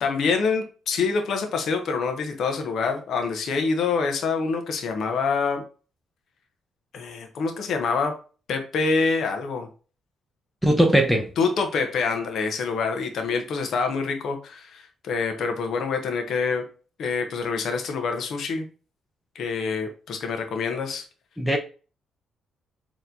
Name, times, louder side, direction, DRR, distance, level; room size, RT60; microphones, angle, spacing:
voice 1, 0.0-5.6 6.9-8.1 8.5-9.7 11.4-16.6 17.0-18.7 19.3-21.1, left 4 dB, 65° left, 0.8 m, -26 dB
voice 2, 10.6-11.3 21.4-21.6, right 1 dB, 5° left, 0.6 m, -19 dB
4.3 x 2.9 x 2.6 m
cardioid pair, 90°, 0 cm